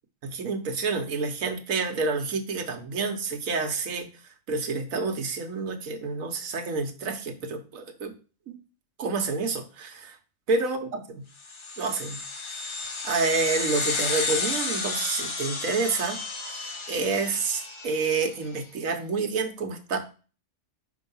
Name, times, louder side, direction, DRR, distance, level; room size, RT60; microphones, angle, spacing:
voice 1, 0.2-4.1 4.5-8.1 8.5-8.6 9.0-10.2 10.5-11.2 11.8-12.2 13.0-16.2 16.6-20.0, right 4 dB, 75° right, 6 dB, 1.3 m, -28 dB
sound 1, 11.5-18.3, left 3 dB, 45° left, 0.3 m, -32 dB
5.5 x 3.5 x 5.4 m, 0.36 s
omnidirectional pair, 1.5 m